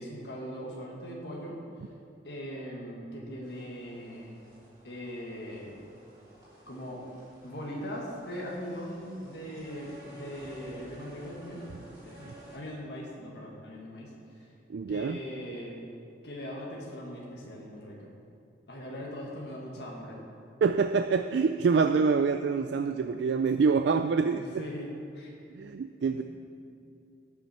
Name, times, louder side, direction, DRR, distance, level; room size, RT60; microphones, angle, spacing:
voice 1, 0.0-1.6 2.2-4.3 4.8-5.7 6.7-7.0 7.4-11.6 12.0-14.5 14.9-15.8 16.2-18.1 18.7-20.2 24.4-24.9 25.1-25.3, equal, 60° left, -3 dB, 1.7 m, -40 dB
sound 1, 3.4-12.6, equal, 15° right, 3.0 m, -52 dB
voice 2, 14.7-15.2 20.6-24.6 25.5-26.2, right 5 dB, 65° right, 8 dB, 0.3 m, -26 dB
18.0 x 6.3 x 4.3 m, 2.5 s
head